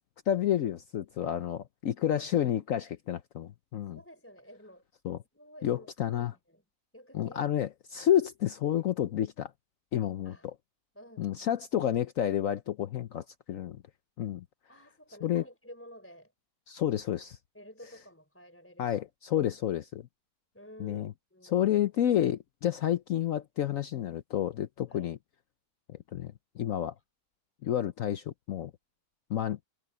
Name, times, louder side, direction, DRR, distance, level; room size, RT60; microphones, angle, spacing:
voice 1, 0.3-4.0 5.0-5.2 5.6-6.3 7.1-9.5 9.9-10.5 11.2-13.8 14.2-14.4 15.2-15.4 16.7-17.4 18.8-20.1 20.8-21.1 21.4-25.2 26.1-26.9 27.6-28.7 29.3-29.6, left 11 dB, 65° left, 1.0 m, -30 dB
voice 2, 3.9-4.8 5.3-6.6 6.9-7.4 10.2-10.5 10.9-11.3 14.7-16.3 17.5-19.0 20.5-21.0 21.3-21.7 24.9-25.2, equal, 10° left, 4.4 m, -52 dB
omnidirectional pair, 1.7 m